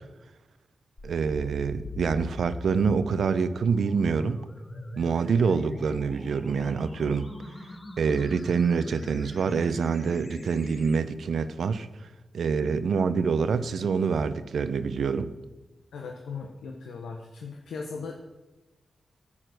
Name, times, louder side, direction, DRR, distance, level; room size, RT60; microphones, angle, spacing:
sound 1, 1.0-11.0, left 1 dB, 45° left, 2.0 m, -42 dB
voice 1, 1.0-4.4 5.0-7.3 8.0-11.9 12.3-15.3, right 5 dB, 80° right, 12 dB, 0.6 m, -26 dB
voice 2, 15.9-18.1, left 5 dB, 90° left, 2 dB, 0.9 m, -38 dB
9.1 x 8.6 x 6.4 m, 1.1 s
cardioid pair, 55°, 0 cm